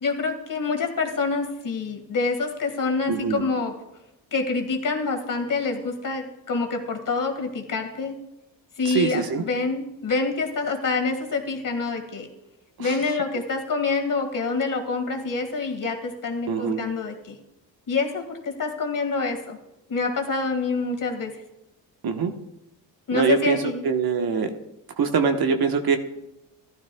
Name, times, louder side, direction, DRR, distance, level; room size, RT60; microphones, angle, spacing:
voice 1, 0.0-3.7 4.3-8.2 8.8-12.3 12.8-17.4 17.9-19.6 19.9-21.3 23.1-23.8, left 4 dB, 45° left, 4 dB, 1.9 m, -26 dB
voice 2, 3.1-3.4 8.8-9.4 12.8-12.9 16.5-16.8 22.0-22.3 23.1-23.6 23.8-24.5 25.0-26.0, right 5 dB, 55° right, 6 dB, 1.2 m, -23 dB
14.5 x 12.0 x 2.3 m, 0.91 s
cardioid pair, 80°, 43 cm